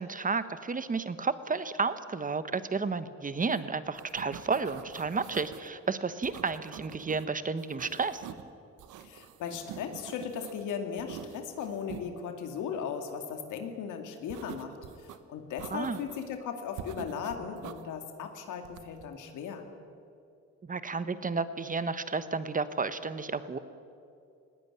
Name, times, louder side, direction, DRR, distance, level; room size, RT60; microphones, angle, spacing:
voice 1, 0.0-8.2 15.7-16.0 20.6-23.6, right 4 dB, 25° right, 12 dB, 1.2 m, -32 dB
sound 1, 3.4-3.6 3.8-5.7 6.2-7.2 7.6-8.5 8.8-10.6 11.0-12.1 14.3-15.2 15.6-16.4 16.8-17.8 18.6-19.1, right 9 dB, 85° right, 1.2 m, -46 dB
voice 2, 9.0-19.7, left 7 dB, 85° left, 5 dB, 2.4 m, -37 dB
19.0 x 17.0 x 10.0 m, 2.6 s
cardioid pair, 90°, 30 cm